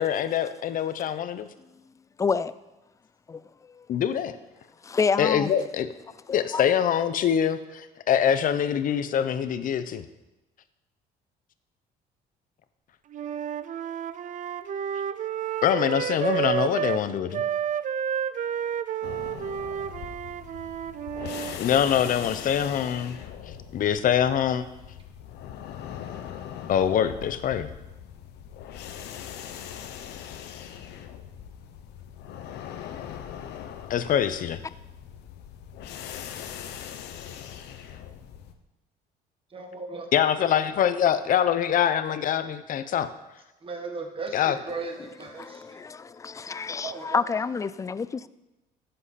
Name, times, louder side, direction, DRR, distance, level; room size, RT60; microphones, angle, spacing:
voice 1, 0.0-1.5 3.9-4.4 5.2-5.9 6.3-10.0 15.6-17.4 21.6-23.2 23.7-24.6 26.7-27.7 33.9-34.6 40.1-43.1 44.3-44.6, left 9 dB, 55° left, 0.8 m, -24 dB
voice 2, 2.2-2.5 3.3-3.4 4.8-5.5 6.3-6.6 45.4-48.3, left 5 dB, 20° left, 0.4 m, -28 dB
Wind instrument woodwind instrument, 13.1-17.0 17.3-21.6, right 9 dB, 50° right, 0.5 m, -30 dB
sound 1, 19.0-38.5, left 9 dB, 80° left, 0.9 m, -41 dB
voice 3, 39.5-40.1 43.6-45.8 46.8-47.2, right 4 dB, 30° right, 1.8 m, -36 dB
13.5 x 7.7 x 4.2 m
cardioid pair, 110°, 17 cm